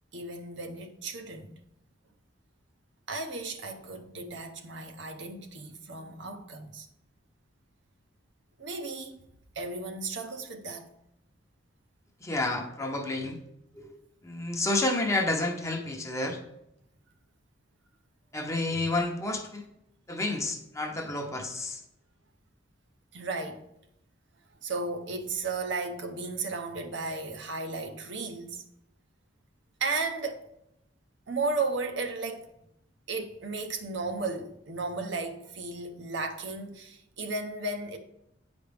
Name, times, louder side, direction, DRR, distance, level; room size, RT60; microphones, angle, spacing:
voice 1, 0.1-1.6 3.1-6.9 8.6-9.2 9.6-10.9 23.1-23.6 24.6-28.6 29.8-30.5 31.3-32.5 33.1-38.0, right 3 dB, 60° right, 0.8 m, -34 dB
voice 2, 12.2-13.4 13.7-14.0 14.2-16.4 18.3-19.6 20.1-21.8, left 2 dB, 15° left, 0.8 m, -30 dB
9.0 x 5.1 x 3.4 m
head